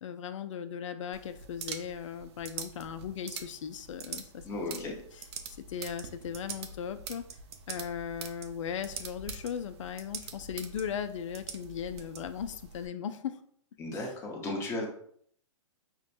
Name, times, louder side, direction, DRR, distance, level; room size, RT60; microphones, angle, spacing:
voice 1, 0.0-4.4 4.7-5.2 5.7-7.2 7.7-13.4, left 8 dB, 70° left, 10 dB, 0.5 m, -38 dB
sound 1, 1.1-12.9, right 6 dB, 55° right, 0.5 m, -44 dB
voice 2, 4.4-4.9 13.8-14.9, left 2 dB, 15° left, -1 dB, 0.8 m, -35 dB
5.7 x 2.2 x 2.6 m, 0.63 s
hypercardioid pair, 145°, 17 cm